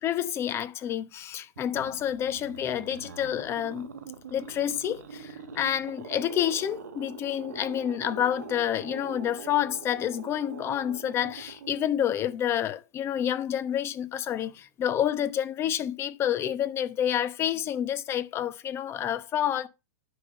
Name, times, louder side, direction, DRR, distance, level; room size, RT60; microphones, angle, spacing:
voice 1, 0.0-3.9 4.3-19.7, left 10 dB, 30° left, 1.0 m, -29 dB
sound 1, 1.6-12.7, right 5 dB, 85° right, 2.0 m, -43 dB
11.0 x 3.8 x 6.7 m
hypercardioid pair, 125°, 9 cm